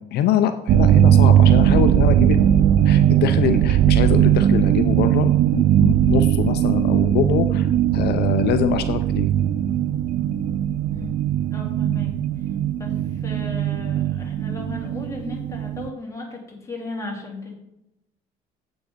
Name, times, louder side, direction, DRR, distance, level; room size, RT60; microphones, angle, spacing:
voice 1, 0.0-9.3, left 10 dB, 75° left, 8 dB, 0.6 m, -24 dB
sound 1, 0.7-15.9, right 11 dB, 50° right, 0.4 m, -19 dB
voice 2, 10.9-11.2 11.5-12.1 12.4-17.5, left 2 dB, 20° left, -1 dB, 2.9 m, -36 dB
8.1 x 6.2 x 5.1 m, 0.86 s
cardioid pair, 110°, 17 cm